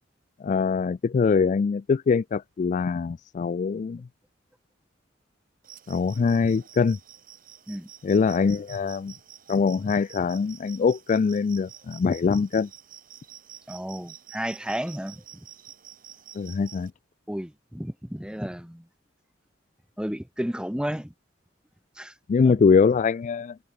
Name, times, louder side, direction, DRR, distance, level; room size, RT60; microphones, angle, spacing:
voice 1, 0.4-4.0 5.9-7.0 8.0-9.1 9.5-12.7 16.4-16.9 22.3-23.6, left 5 dB, 40° left, 0.3 m, -23 dB
sound 1, 5.6-16.9, right 10 dB, 50° right, 6.7 m, -49 dB
voice 2, 13.7-15.2 17.3-18.9 20.0-21.1 22.0-22.1 22.4-22.5, equal, 5° right, 1.5 m, -32 dB
head